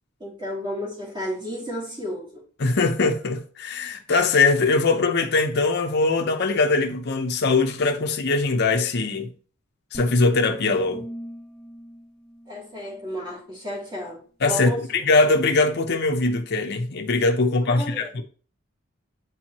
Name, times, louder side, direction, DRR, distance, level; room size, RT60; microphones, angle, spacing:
voice 1, 0.2-2.4 12.5-15.0 17.6-18.1, equal, 20° right, 2.3 m, -33 dB
voice 2, 2.6-9.3 9.9-11.0 14.4-18.2, left 3 dB, 55° left, 0.7 m, -21 dB
sound 1, 9.9-13.3, equal, 5° left, 1.1 m, -41 dB
8.4 x 4.4 x 2.9 m
head